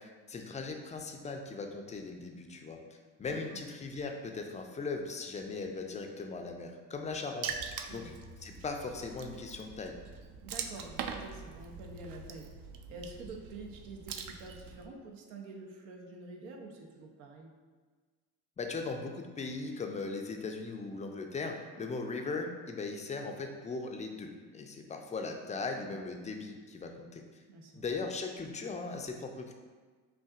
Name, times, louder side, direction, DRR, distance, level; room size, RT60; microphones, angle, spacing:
voice 1, 0.0-2.8 3.2-7.6 7.9-8.1 8.4-9.9 18.6-27.4 27.7-29.5, left 3 dB, 15° left, 4 dB, 0.4 m, -39 dB
voice 2, 3.3-3.6 7.9-8.1 10.4-12.5 12.9-17.5 27.5-27.9, right 3 dB, 80° right, 1 dB, 0.7 m, -47 dB
Water / Splash splatter, 7.4-14.9, right 6 dB, 50° right, 0.4 m, -43 dB
5.6 x 2.5 x 2.4 m, 1.4 s
hypercardioid pair, 60°, 46 cm